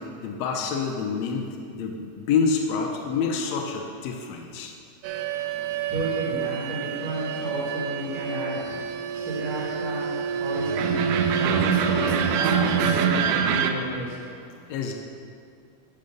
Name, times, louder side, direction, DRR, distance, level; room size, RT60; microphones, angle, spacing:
voice 1, 0.0-4.7 14.7-14.9, left 5 dB, 75° left, 2 dB, 1.7 m, -27 dB
sound 1, 5.0-13.7, right 7 dB, 85° right, 2.1 m, -26 dB
voice 2, 5.5-14.8, right 1 dB, 50° right, -5 dB, 2.4 m, -33 dB
13.0 x 4.3 x 5.2 m, 2.3 s
omnidirectional pair, 3.5 m